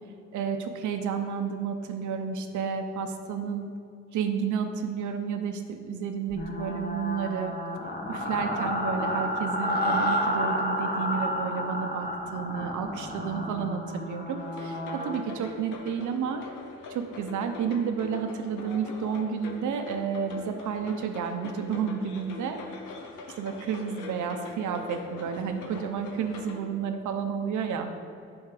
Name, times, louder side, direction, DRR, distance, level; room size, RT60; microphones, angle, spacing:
voice 1, 0.3-3.7 4.1-7.5 8.1-16.4 16.9-22.6 23.4-27.9, right 7 dB, 75° right, 6 dB, 0.8 m, -31 dB
sound 1, 6.3-15.2, equal, 30° left, 1.3 m, -30 dB
sound 2, 14.4-26.7, left 4 dB, 90° left, 1.0 m, -43 dB
10.5 x 3.6 x 4.9 m, 2.6 s
cardioid pair, 90°, 30 cm